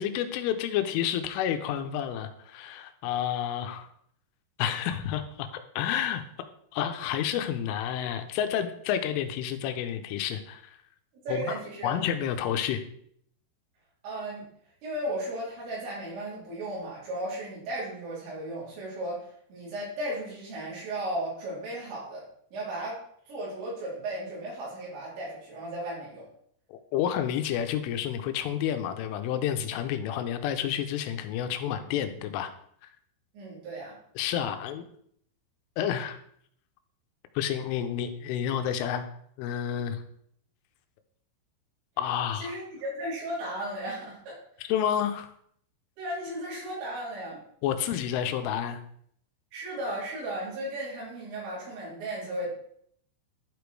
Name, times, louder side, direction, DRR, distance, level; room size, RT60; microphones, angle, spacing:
voice 1, 0.0-3.9 4.6-5.5 5.8-6.2 6.7-10.8 11.3-11.5 11.8-12.8 26.7-32.5 34.2-34.8 35.8-36.2 37.4-39.1 39.4-40.0 42.0-42.5 44.7-45.3 47.6-48.8, left 9 dB, 85° left, 8 dB, 3.2 m, -30 dB
voice 2, 11.3-12.0 14.0-14.4 14.8-22.3 22.5-23.0 23.3-26.3 33.3-34.0 42.4-44.4 46.0-47.4 49.5-52.5, right 1 dB, 80° right, -6 dB, 6.9 m, -35 dB
11.5 x 5.1 x 4.7 m, 0.66 s
omnidirectional pair, 5.7 m